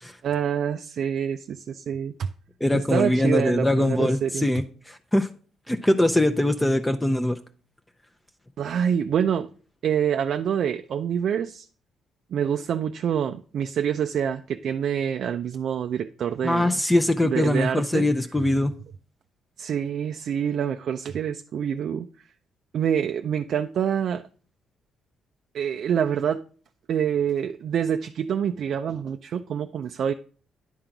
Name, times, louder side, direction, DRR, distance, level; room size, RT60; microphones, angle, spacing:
voice 1, 0.2-2.3 2.7-4.5 8.6-9.5 9.8-11.7 12.3-16.8 17.2-18.1 19.6-22.1 22.7-24.2 25.5-26.4 26.9-30.1, right 8 dB, 65° right, 0.3 m, -26 dB
voice 2, 2.6-5.3 5.7-7.4 16.4-18.7, left 1 dB, 10° left, 0.5 m, -22 dB
9.9 x 3.8 x 5.8 m
cardioid pair, 90°, 0 cm